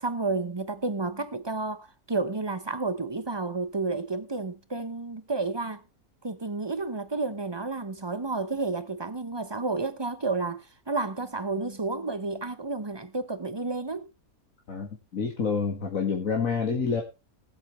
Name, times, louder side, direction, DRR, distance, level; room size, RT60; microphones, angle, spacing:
voice 1, 0.0-5.8 6.2-14.1, right 3 dB, 25° right, 0.7 m, -31 dB
voice 2, 14.7-17.0, left 5 dB, 65° left, 2.2 m, -28 dB
20.0 x 8.0 x 3.2 m
omnidirectional pair, 1.5 m